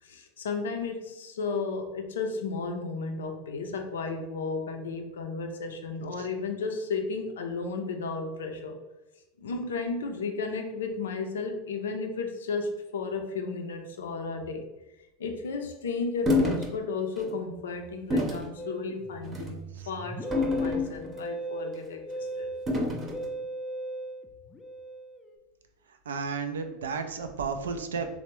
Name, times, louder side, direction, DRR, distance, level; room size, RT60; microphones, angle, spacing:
voice 1, 0.0-8.8 9.4-14.6 15.2-22.5, left 4 dB, 80° left, 5 dB, 0.4 m, -34 dB
sound 1, 16.3-16.7 17.2-17.3 18.1-18.5 19.3-19.6 20.3-21.2 22.7-23.2, left 2 dB, 30° right, 0.7 m, -27 dB
Musical instrument, 18.6-25.4, right 2 dB, 20° left, 0.4 m, -38 dB
voice 2, 26.1-28.1, right 5 dB, 85° right, 7 dB, 0.3 m, -32 dB
3.3 x 2.0 x 3.0 m, 1.0 s
hypercardioid pair, 90°, 0 cm